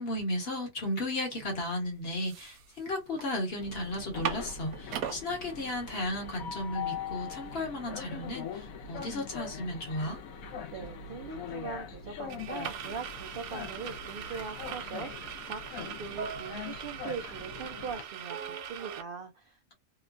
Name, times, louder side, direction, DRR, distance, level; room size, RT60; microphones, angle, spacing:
voice 1, 0.0-10.2, left 1 dB, 50° left, 1.2 m, -34 dB
sound 1, 1.6-1.7 2.1-3.3 3.6-3.7 4.0-5.2 5.8-5.9 6.2-19.0, right 8 dB, 85° right, 1.0 m, -41 dB
Train, 3.6-18.0, left 7 dB, 80° left, 1.0 m, -42 dB
voice 2, 10.7-19.7, right 6 dB, 65° right, 0.5 m, -41 dB
2.9 x 2.2 x 2.4 m
omnidirectional pair, 1.5 m